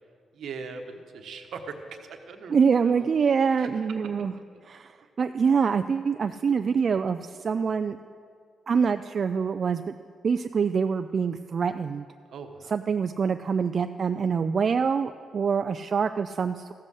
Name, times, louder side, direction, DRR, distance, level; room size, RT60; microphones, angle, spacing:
voice 1, 0.3-2.5 2.8-3.1 3.6-3.7 12.3-12.7, right 5 dB, 80° right, 5 dB, 1.1 m, -40 dB
voice 2, 2.5-4.3 4.7-8.0 8.7-9.9 10.2-12.1 12.7-16.7, right 6 dB, 55° right, 9 dB, 0.3 m, -25 dB
14.5 x 7.6 x 6.4 m, 2.2 s
cardioid pair, 75°, 0 cm